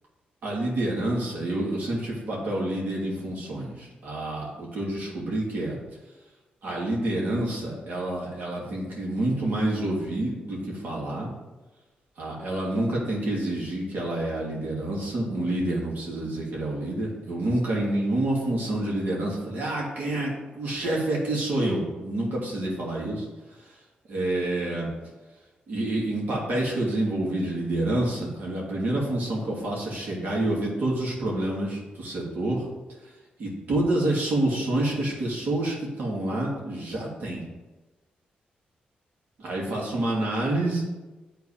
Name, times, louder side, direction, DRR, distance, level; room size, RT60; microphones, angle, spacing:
voice 1, 0.4-5.8 6.6-11.3 12.2-23.3 23.6-23.7 24.1-24.9 25.7-32.7 33.0-33.1 33.4-37.4 39.4-40.8, right 1 dB, 70° right, -3 dB, 2.4 m, -28 dB
10.0 x 3.8 x 3.4 m, 1.2 s
cardioid pair, 75°, 3 cm